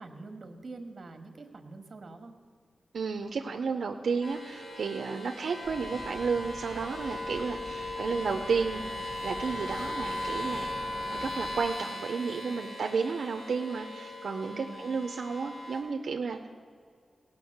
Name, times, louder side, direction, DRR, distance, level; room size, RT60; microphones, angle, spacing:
voice 1, 0.0-2.3 14.5-14.9, right 3 dB, 55° right, 6 dB, 1.4 m, -45 dB
voice 2, 2.9-8.8 9.2-10.7 11.1-16.5, right 5 dB, 85° right, 4 dB, 0.6 m, -32 dB
sound 1, 4.2-15.8, left 1 dB, 70° left, 3.9 m, -38 dB
sound 2, 5.6-11.7, right 1 dB, ahead, 1.0 m, -46 dB
17.5 x 5.9 x 7.9 m, 2.1 s
wide cardioid pair, 100°, 0 cm